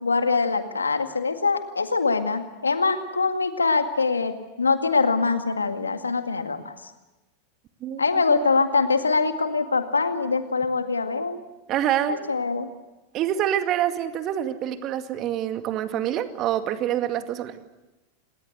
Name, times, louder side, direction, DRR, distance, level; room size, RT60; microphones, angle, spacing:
voice 1, 0.0-6.7 8.0-11.4 12.1-12.7, left 4 dB, 85° left, 8 dB, 2.0 m, -23 dB
voice 2, 7.8-8.4 11.7-12.2 13.1-17.6, right 11 dB, 40° right, 8 dB, 2.2 m, -26 dB
28.0 x 20.0 x 8.1 m, 1.1 s
figure-of-eight pair, 90°, 0 cm